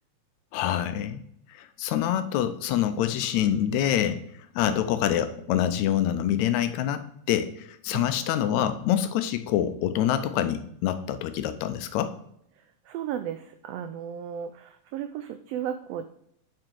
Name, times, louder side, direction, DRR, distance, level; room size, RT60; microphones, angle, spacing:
voice 1, 0.5-1.2 1.5-4.2 4.6-12.1, left 10 dB, 80° left, 10 dB, 1.9 m, -26 dB
voice 2, 12.9-16.1, right 9 dB, 90° right, 10 dB, 1.4 m, -34 dB
7.5 x 5.2 x 4.6 m, 0.72 s
omnidirectional pair, 3.4 m